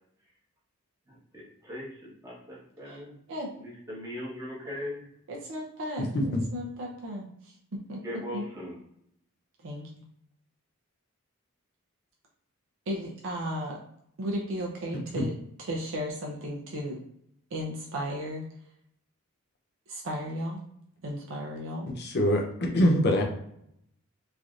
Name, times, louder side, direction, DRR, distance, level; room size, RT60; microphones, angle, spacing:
voice 1, 1.3-3.2 3.6-5.1 8.0-8.8, left 1 dB, 15° right, -7 dB, 1.0 m, -39 dB
voice 2, 5.3-8.5 9.6-9.9 12.9-13.8 14.2-15.3 15.6-17.0 17.5-18.5 19.9-20.6 21.0-21.9, equal, 65° right, -2 dB, 0.5 m, -35 dB
voice 3, 6.0-6.4 15.1-15.2 22.0-23.2, equal, 50° left, 3 dB, 0.5 m, -24 dB
3.2 x 2.6 x 2.4 m, 0.73 s
head